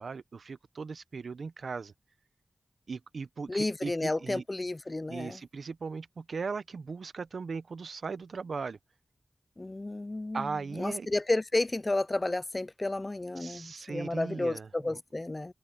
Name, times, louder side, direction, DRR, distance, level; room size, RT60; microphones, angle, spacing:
voice 1, 0.0-1.9 2.9-4.4 5.1-8.8 10.3-11.1 13.4-15.0, right 5 dB, 85° right, 0.7 m, -38 dB
voice 2, 3.5-5.4 9.6-15.5, left 2 dB, 30° left, 0.4 m, -32 dB
open air
wide cardioid pair, 95°, 0 cm